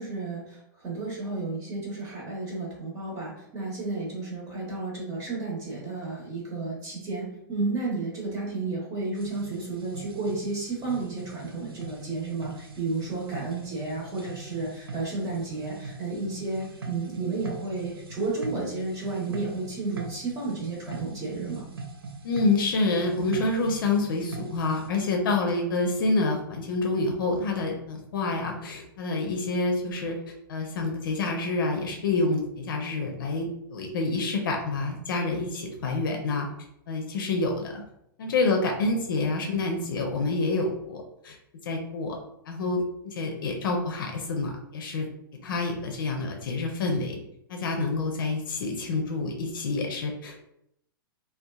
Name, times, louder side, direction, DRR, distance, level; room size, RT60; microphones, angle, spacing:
voice 1, 0.0-21.7, right 3 dB, 30° right, -4 dB, 1.0 m, -32 dB
sound 1, 9.1-24.9, right 4 dB, 90° right, 0.5 m, -42 dB
voice 2, 22.2-30.2 30.5-36.5 36.9-37.7 38.2-41.4 41.6-42.2 42.5-45.1 45.4-47.2 47.5-50.5, left 3 dB, 65° left, 2 dB, 0.5 m, -27 dB
2.6 x 2.2 x 2.2 m, 0.77 s
hypercardioid pair, 115°, 12 cm